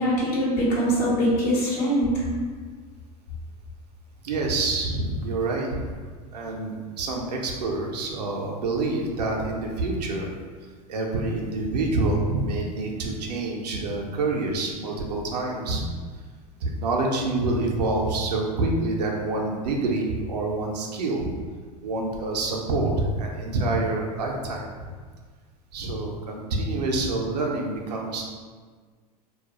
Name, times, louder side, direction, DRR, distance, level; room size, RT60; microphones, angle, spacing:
voice 1, 0.0-2.2, equal, 65° left, -7 dB, 0.9 m, -23 dB
voice 2, 4.2-5.9 6.3-10.3 10.9-15.8 16.6-21.3 21.8-24.9 25.7-28.2, right 2 dB, 80° right, 0 dB, 0.5 m, -27 dB
2.3 x 2.0 x 2.9 m, 1.5 s
hypercardioid pair, 90°, 21 cm